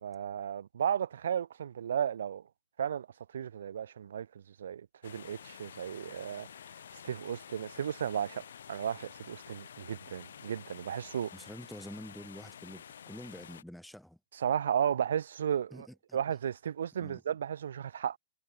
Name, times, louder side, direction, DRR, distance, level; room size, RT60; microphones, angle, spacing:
voice 1, 0.0-2.4 2.8-3.1 3.3-6.5 7.0-11.3 14.3-15.9 16.1-18.2, right 8 dB, 85° right, 0.5 m, -34 dB
sound 1, 5.0-13.6, left 8 dB, 85° left, 2.0 m, -50 dB
voice 2, 11.3-14.2 15.7-16.2 17.0-17.2, equal, ahead, 1.8 m, -47 dB
hypercardioid pair, 160°, 0 cm